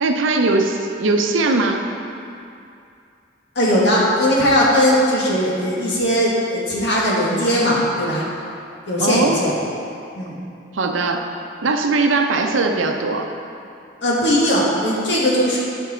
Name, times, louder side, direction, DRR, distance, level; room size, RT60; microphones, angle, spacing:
voice 1, 0.0-1.8 9.0-9.4 10.7-11.3 11.6-13.3, right 3 dB, 90° right, 4 dB, 0.6 m, -19 dB
voice 2, 3.5-8.2 8.9-9.5 10.1-10.3 14.0-15.6, equal, 65° left, -5 dB, 1.6 m, -18 dB
9.1 x 5.3 x 4.3 m, 2.6 s
head